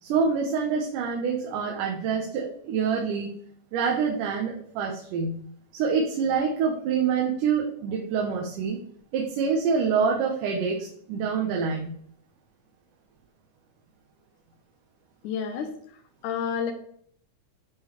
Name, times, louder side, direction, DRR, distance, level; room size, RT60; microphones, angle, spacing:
voice 1, 0.0-3.3 3.7-5.4 5.7-8.8 9.1-11.9, right 6 dB, 80° right, -1 dB, 2.4 m, -26 dB
voice 2, 15.2-15.7 16.2-16.7, left 7 dB, 80° left, 4 dB, 2.1 m, -29 dB
9.5 x 3.8 x 3.0 m, 0.63 s
omnidirectional pair, 3.7 m